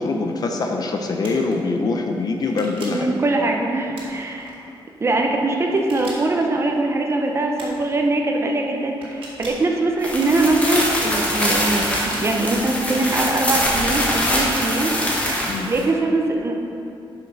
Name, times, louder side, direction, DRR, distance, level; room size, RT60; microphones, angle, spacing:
voice 1, 0.0-3.1 15.5-15.7, left 3 dB, 45° left, 3 dB, 0.6 m, -23 dB
sound 1, 1.2-1.5 2.4-3.1 3.9-4.5 5.7-6.5 7.6-7.9 9.0-9.7 10.2-10.8 11.6-12.3 13.0-13.4, right 2 dB, 80° right, 1.8 m, -40 dB
voice 2, 2.9-4.5 5.0-14.9 15.2-16.6, right 2 dB, 30° right, 2 dB, 0.7 m, -22 dB
sound 2, 10.0-15.8, equal, 15° left, 1.3 m, -23 dB
7.5 x 5.7 x 5.3 m, 2.6 s
wide cardioid pair, 160°, 9 cm